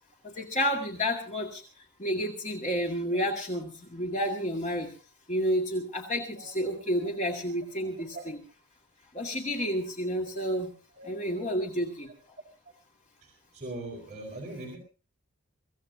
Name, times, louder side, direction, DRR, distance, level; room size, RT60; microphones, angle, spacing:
voice 1, 0.2-1.6 2.0-4.9 5.3-8.4 9.1-10.7 11.0-12.1, equal, 35° left, 1 dB, 2.1 m, -30 dB
voice 2, 13.2-14.8, right 3 dB, 35° right, -2 dB, 5.2 m, -39 dB
24.5 x 16.5 x 2.8 m, 0.33 s
head